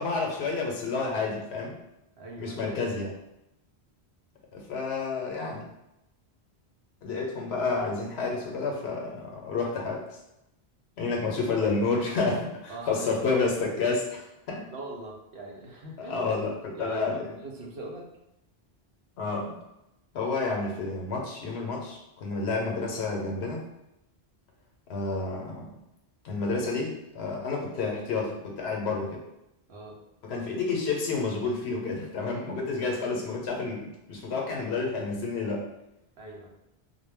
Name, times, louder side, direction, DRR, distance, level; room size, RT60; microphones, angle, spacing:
voice 1, 0.0-1.7 2.4-3.1 4.5-5.6 7.0-10.1 11.0-14.7 16.0-17.3 19.2-19.6 20.1-23.6 24.9-25.7 26.2-29.2 30.2-35.7, left 3 dB, 85° left, 0 dB, 0.9 m, -30 dB
voice 2, 2.2-2.6 11.1-11.2 12.7-13.1 13.4-13.6 14.7-16.3 16.7-18.1 29.7-30.0 36.2-36.5, right 2 dB, 75° right, 0 dB, 0.8 m, -41 dB
2.2 x 2.1 x 3.2 m, 0.88 s
omnidirectional pair, 1.1 m